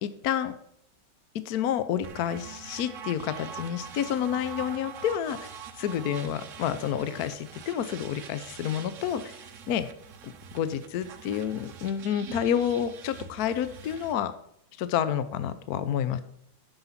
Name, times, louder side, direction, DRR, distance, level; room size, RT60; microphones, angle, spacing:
voice 1, 0.0-0.5 1.3-9.4 9.7-9.9 10.2-14.3 14.8-16.2, left 9 dB, 70° left, 12 dB, 0.9 m, -29 dB
sound 1, 2.0-14.1, right 7 dB, 65° right, 0.8 m, -44 dB
9.6 x 6.9 x 5.8 m, 0.71 s
omnidirectional pair, 2.4 m